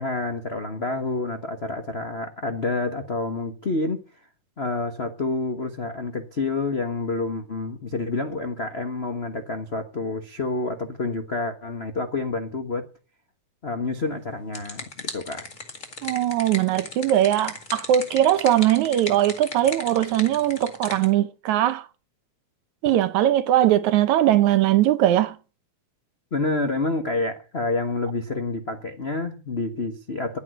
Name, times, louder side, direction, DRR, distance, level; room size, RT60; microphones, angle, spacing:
voice 1, 0.0-4.0 4.6-12.9 13.6-15.5 26.3-30.4, left 3 dB, 60° left, 0.6 m, -28 dB
sound 1, 14.2-21.1, left 3 dB, 30° left, 2.1 m, -37 dB
voice 2, 16.0-21.9 22.8-25.4, right 12 dB, 75° right, 2.1 m, -20 dB
11.0 x 9.2 x 9.1 m
omnidirectional pair, 3.6 m